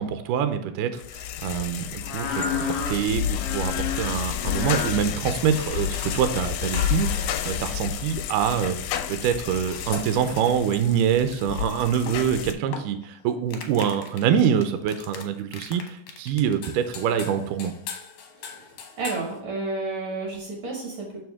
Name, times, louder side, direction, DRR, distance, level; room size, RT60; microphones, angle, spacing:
voice 1, 0.0-8.8 9.1-17.7, right 8 dB, 80° right, 9 dB, 2.1 m, -25 dB
sound 1, 1.0-12.5, left 9 dB, 90° left, 2.3 m, -30 dB
sound 2, 2.0-8.0 9.7-13.0 13.5-15.2 15.5-19.3, left 6 dB, 70° left, 1.8 m, -34 dB
voice 2, 19.0-21.2, right 3 dB, 55° right, -1 dB, 1.6 m, -31 dB
6.8 x 6.1 x 3.5 m, 0.76 s
omnidirectional pair, 4.0 m